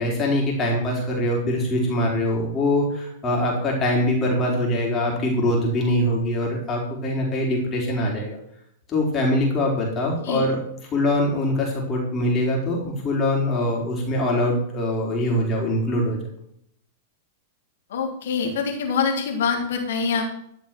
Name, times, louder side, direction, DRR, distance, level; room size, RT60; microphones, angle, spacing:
voice 1, 0.0-8.4 8.9-10.6 10.9-16.2, left 1 dB, 25° left, -2 dB, 4.5 m, -23 dB
voice 2, 17.9-20.2, left 5 dB, 65° left, 1 dB, 3.3 m, -24 dB
14.5 x 6.1 x 6.1 m, 0.71 s
figure-of-eight pair, 100°, 0 cm